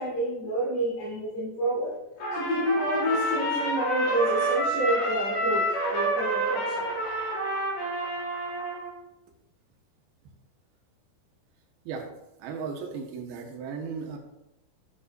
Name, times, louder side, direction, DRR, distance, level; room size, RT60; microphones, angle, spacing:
voice 1, 0.0-1.9 2.3-7.0, right 1 dB, 65° left, -10 dB, 5.1 m, -29 dB
Trumpet, 2.2-8.9, right 1 dB, 85° left, 5.7 m, -28 dB
voice 2, 12.4-14.2, right 5 dB, 75° right, 2 dB, 2.9 m, -35 dB
12.5 x 7.4 x 2.7 m, 0.89 s
omnidirectional pair, 5.0 m